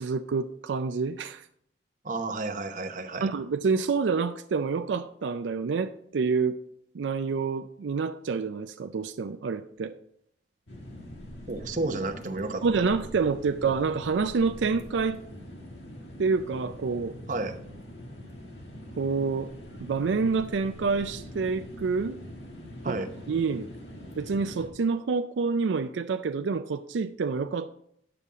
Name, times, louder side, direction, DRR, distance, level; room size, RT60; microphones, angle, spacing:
voice 1, 0.0-1.4 3.2-6.6 6.9-9.9 12.6-15.2 16.2-17.2 19.0-19.5 19.8-22.2 22.9-23.0 23.3-23.7 24.2-27.7, right 4 dB, 85° right, 0.4 m, -27 dB
voice 2, 2.0-3.3 11.5-12.6 17.3-17.6 22.8-23.1, right 2 dB, 45° right, 0.8 m, -31 dB
sound 1, 10.7-24.7, left 1 dB, 80° left, 1.6 m, -43 dB
9.8 x 6.9 x 3.7 m
head